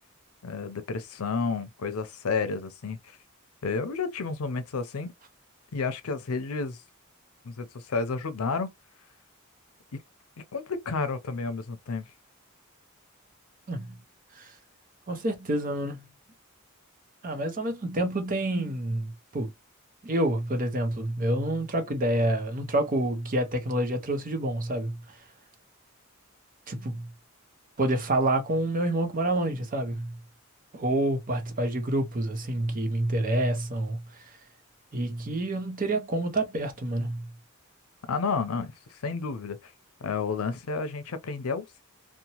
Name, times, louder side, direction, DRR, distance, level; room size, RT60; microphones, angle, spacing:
voice 1, 0.4-3.2 3.6-5.1 5.7-6.8 7.4-8.7 10.5-12.1 38.1-39.7 40.0-41.8, left 4 dB, 90° left, 0.6 m, -31 dB
voice 2, 15.1-16.1 17.2-19.5 20.0-25.0 26.7-27.1 27.8-30.1 30.7-34.0 34.9-37.3, right 1 dB, 40° right, 0.7 m, -28 dB
2.8 x 2.2 x 2.8 m
head